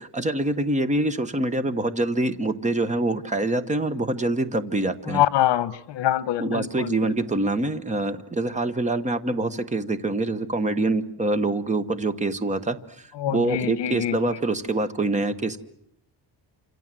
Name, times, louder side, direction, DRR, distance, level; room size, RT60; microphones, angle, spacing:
voice 1, 0.0-5.2 6.4-12.8 13.3-15.6, right 2 dB, 15° right, 11 dB, 1.1 m, -25 dB
voice 2, 5.1-7.0 13.2-14.4, left 12 dB, 80° left, 16 dB, 1.2 m, -25 dB
28.0 x 26.5 x 7.6 m, 0.71 s
cardioid pair, 180°, 42 cm